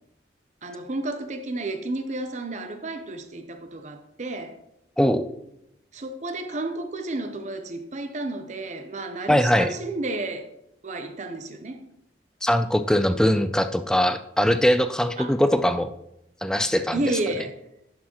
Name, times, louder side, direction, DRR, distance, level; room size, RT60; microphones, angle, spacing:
voice 1, 0.6-4.6 5.9-10.5 10.8-11.8 15.2-15.3 16.9-17.5, right 2 dB, 40° right, 7 dB, 0.6 m, -31 dB
voice 2, 9.3-9.7 12.4-15.9 16.4-17.0, equal, 5° left, 11 dB, 0.3 m, -21 dB
11.0 x 6.4 x 3.0 m, 0.81 s
head